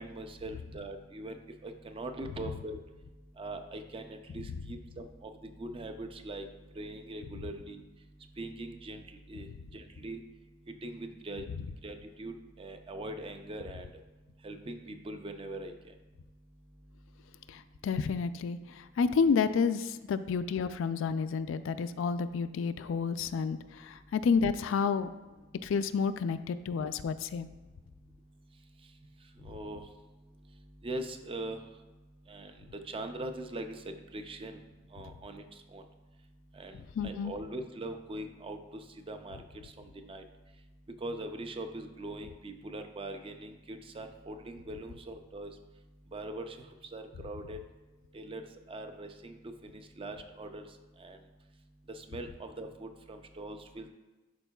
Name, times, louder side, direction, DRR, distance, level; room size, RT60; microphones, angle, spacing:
voice 1, 0.0-1.4 1.6-2.8 3.4-6.5 6.8-7.8 8.4-9.0 9.3-9.5 9.7-10.2 10.8-11.4 11.8-13.9 14.4-15.7 29.4-29.8 30.8-31.6 32.3-32.5 32.9-34.6 34.9-35.4 35.7-35.8 36.5-39.4 39.6-40.2 41.0-45.5 46.1-46.7 46.9-47.6 48.1-48.4 48.7-50.7 51.0-51.2 51.9-53.9, right 1 dB, 25° right, 6 dB, 0.4 m, -41 dB
voice 2, 17.5-25.1 25.6-27.5 37.0-37.3, left 5 dB, 70° left, 11 dB, 0.3 m, -30 dB
11.5 x 4.5 x 2.3 m, 1.2 s
head